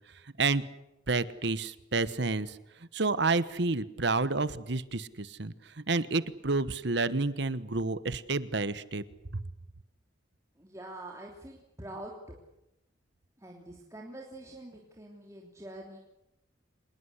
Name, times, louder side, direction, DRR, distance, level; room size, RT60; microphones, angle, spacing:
voice 1, 1.1-2.5 2.9-5.5 5.9-9.0 9.3-9.4, right 3 dB, 60° right, 15 dB, 1.2 m, -29 dB
voice 2, 10.6-12.4 13.4-16.0, right 1 dB, 15° right, 0 dB, 3.2 m, -45 dB
26.0 x 21.5 x 8.2 m, 0.88 s
head